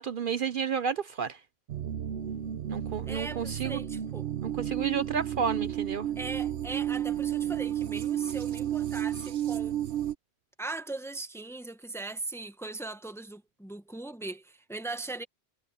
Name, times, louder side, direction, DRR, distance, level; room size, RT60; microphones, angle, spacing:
voice 1, 0.0-1.4 2.7-3.8 4.4-6.1, right 7 dB, 55° right, 0.8 m, -31 dB
sound 1, 1.7-10.1, right 11 dB, 80° right, 1.0 m, -32 dB
voice 2, 3.1-4.3 6.2-9.8 10.6-15.3, right 2 dB, 5° left, 0.8 m, -39 dB
omnidirectional pair, 1.1 m